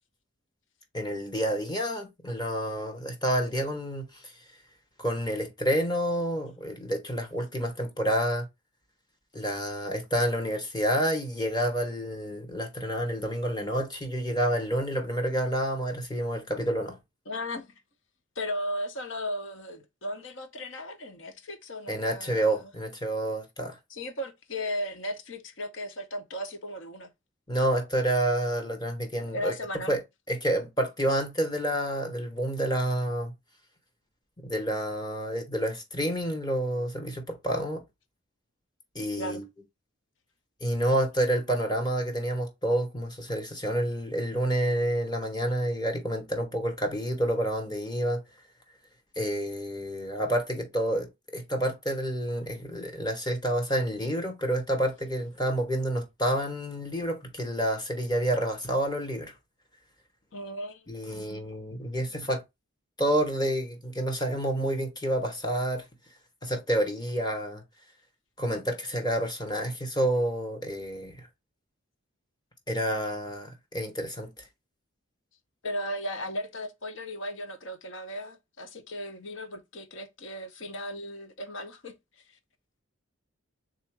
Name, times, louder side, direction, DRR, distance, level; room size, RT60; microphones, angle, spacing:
voice 1, 0.9-4.3 5.0-8.5 9.3-17.0 21.9-23.8 27.5-29.5 29.9-30.0 30.3-33.3 34.4-37.8 38.9-39.4 40.6-48.2 49.2-59.3 60.9-62.4 63.0-65.9 66.4-67.6 68.4-71.3 72.7-74.4, right 1 dB, 20° left, 0.8 m, -29 dB
voice 2, 17.3-17.7 18.4-22.6 23.9-27.1 29.3-29.9 39.2-39.4 60.3-60.8 61.1-61.4 75.6-81.9, equal, 65° left, 0.8 m, -36 dB
3.5 x 2.5 x 4.5 m
head